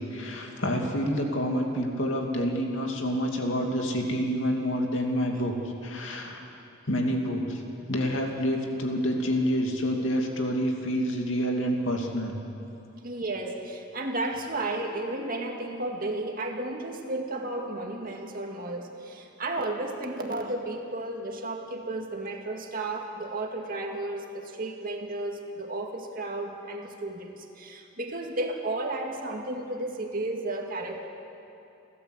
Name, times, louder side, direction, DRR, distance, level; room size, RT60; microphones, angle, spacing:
voice 1, 0.0-5.5 5.8-6.4 6.9-7.6 7.9-12.4, equal, 65° left, 1 dB, 2.6 m, -28 dB
voice 2, 13.0-31.1, right 2 dB, 45° right, 2 dB, 2.1 m, -33 dB
30.0 x 12.5 x 8.0 m, 2.9 s
head